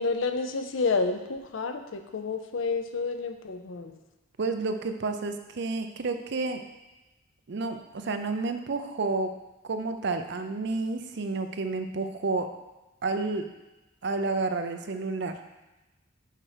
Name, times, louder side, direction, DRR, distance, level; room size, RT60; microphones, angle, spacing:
voice 1, 0.0-4.0, left 4 dB, 85° left, 8 dB, 0.6 m, -29 dB
voice 2, 4.4-6.6 7.5-9.3 9.6-12.5 13.0-13.4 14.0-15.4, right 3 dB, 60° right, 7 dB, 0.5 m, -30 dB
6.6 x 4.3 x 4.9 m, 1.1 s
head